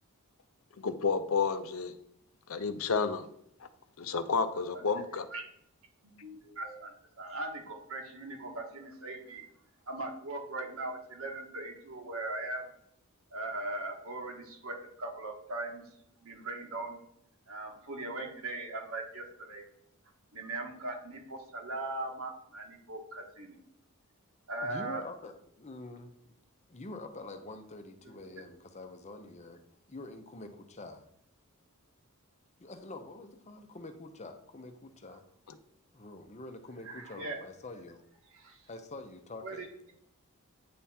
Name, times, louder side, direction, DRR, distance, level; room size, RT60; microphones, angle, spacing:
voice 1, 0.8-1.9 2.5-3.3 3.6-3.7 4.0-5.3 35.5-35.6, left 5 dB, 70° left, 10 dB, 0.6 m, -31 dB
voice 2, 6.0-9.5 9.9-12.6 13.3-15.8 16.2-17.0 17.5-19.6 20.3-23.6 24.5-25.0 28.0-28.1 36.8-37.4 38.3-38.6 39.4-39.6, right 2 dB, 70° right, 1 dB, 1.6 m, -39 dB
voice 3, 24.6-26.3 26.7-31.0 32.6-35.2 35.9-38.0 38.7-39.7, left 2 dB, 30° left, 7 dB, 0.7 m, -46 dB
9.3 x 3.6 x 4.3 m, 0.71 s
head